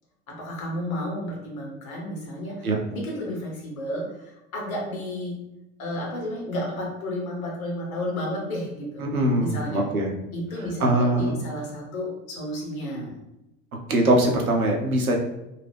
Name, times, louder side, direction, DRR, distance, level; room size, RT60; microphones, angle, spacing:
voice 1, 0.3-5.4 5.8-9.0 9.4-9.9 10.3-13.2, left 1 dB, 75° left, -2 dB, 1.2 m, -32 dB
voice 2, 9.0-10.1 10.8-11.5 13.9-15.2, right 1 dB, 90° right, 1 dB, 0.7 m, -22 dB
2.8 x 2.4 x 3.3 m, 0.91 s
figure-of-eight pair, 75°, 42 cm